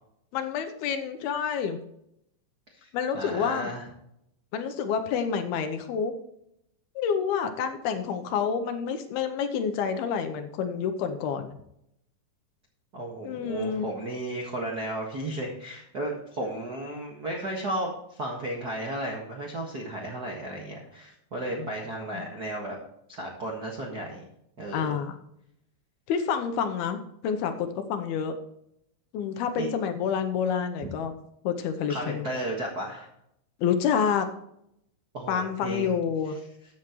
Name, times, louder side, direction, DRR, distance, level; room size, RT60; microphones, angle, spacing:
voice 1, 0.3-1.8 2.9-3.7 4.5-6.1 7.0-11.5 13.2-13.9 21.5-21.7 22.1-22.2 24.7-25.2 26.1-28.3 29.1-31.1 31.4-32.3 33.6-34.3 35.3-36.4, left 7 dB, 75° left, 7 dB, 2.6 m, -28 dB
voice 2, 3.1-3.8 12.9-22.7 23.1-24.2 24.6-24.9 29.6-29.7 31.9-33.1 35.1-36.0, right 1 dB, 65° right, -1 dB, 0.9 m, -34 dB
14.5 x 8.8 x 3.1 m, 0.77 s
omnidirectional pair, 4.8 m